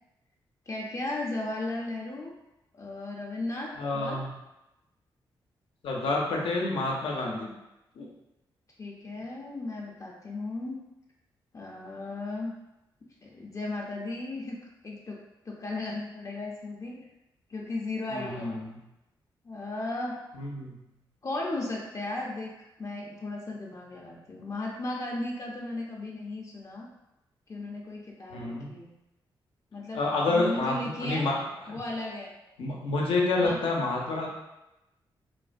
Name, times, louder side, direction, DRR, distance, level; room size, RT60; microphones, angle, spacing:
voice 1, 0.7-2.3 2.7-4.2 8.8-10.8 11.5-12.5 13.2-14.6 14.8-17.0 17.5-18.6 19.4-20.2 21.2-22.5 22.8-26.9 27.5-28.9 29.7-31.3 31.7-32.3 33.4-33.7, left 2 dB, 35° left, -2 dB, 0.5 m, -35 dB
voice 2, 3.8-4.3 5.8-7.5 8.0-8.1 18.1-18.8 20.3-20.7 28.3-28.7 29.9-30.7 31.0-31.4 31.6-31.8 32.6-34.3, left 2 dB, 85° left, -1 dB, 0.6 m, -28 dB
3.1 x 2.1 x 2.5 m, 0.94 s
cardioid pair, 60°, 9 cm